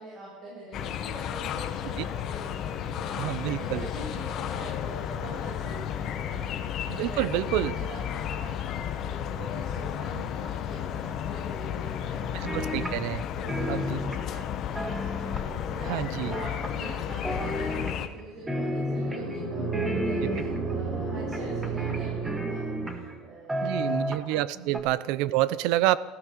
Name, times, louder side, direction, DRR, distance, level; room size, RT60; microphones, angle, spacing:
voice 1, 0.0-12.8 13.0-24.0 24.5-24.7, right 2 dB, 50° right, -5 dB, 7.0 m, -44 dB
sound 1, 0.7-18.1, left 9 dB, 45° left, 1.0 m, -33 dB
voice 2, 3.2-3.9 6.9-7.7 12.3-13.2 13.7-14.0 15.9-16.3 20.2-20.5 23.6-26.0, right 15 dB, 75° right, 18 dB, 0.6 m, -28 dB
sound 2, 12.5-13.2 13.5-15.7 16.3-17.0 17.2-18.2 18.5-19.4 19.7-20.7 21.3-23.2 23.5-24.4 24.7-24.8, equal, 10° right, 1.7 m, -32 dB
sound 3, 18.3-23.3, right 4 dB, 30° right, 4.3 m, -32 dB
15.0 x 13.5 x 6.7 m, 1.3 s
cardioid pair, 140°, 0 cm